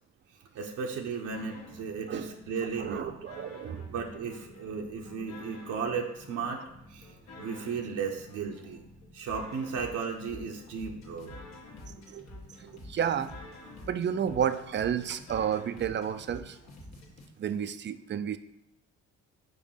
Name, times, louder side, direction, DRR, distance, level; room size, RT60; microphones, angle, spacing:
voice 1, 0.5-3.1 3.9-6.6 6.9-7.1 7.4-8.8 9.1-11.3, right 5 dB, 80° right, 1 dB, 0.9 m, -35 dB
sound 1, 1.3-17.3, left 2 dB, 60° left, 1.4 m, -49 dB
voice 2, 2.6-3.9 12.1-12.2 12.6-13.3 13.9-16.6 17.4-18.4, right 8 dB, 40° right, 12 dB, 0.5 m, -31 dB
5.3 x 4.0 x 5.5 m, 0.82 s
cardioid pair, 90°, 30 cm